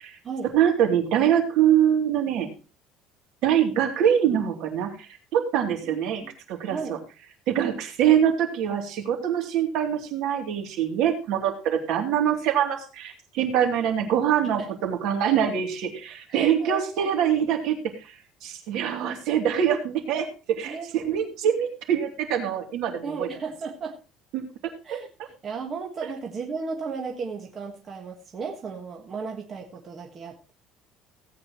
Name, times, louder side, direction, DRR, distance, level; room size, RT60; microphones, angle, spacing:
voice 1, 0.5-2.5 3.4-6.2 6.5-7.0 7.5-23.3 24.3-25.0, right 9 dB, 65° right, 4 dB, 2.9 m, -24 dB
voice 2, 16.3-17.1 20.6-20.9 23.0-24.0 24.8-25.1 25.4-30.5, right 5 dB, 30° right, 1 dB, 1.5 m, -34 dB
17.5 x 8.6 x 3.0 m, 0.31 s
cardioid pair, 160°, 0 cm